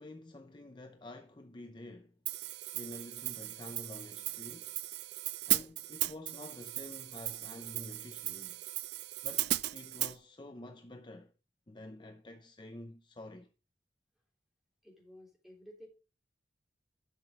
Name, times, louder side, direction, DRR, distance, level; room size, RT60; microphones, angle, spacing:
voice 1, 0.0-2.1 2.7-4.7 5.5-8.6 9.2-11.3 11.7-13.5, left 1 dB, 25° left, 0.7 m, -49 dB
Hi-hat, 2.3-10.2, right 16 dB, 65° right, 0.4 m, -36 dB
voice 2, 14.8-15.9, equal, ahead, 3.3 m, -53 dB
11.5 x 6.0 x 4.7 m
head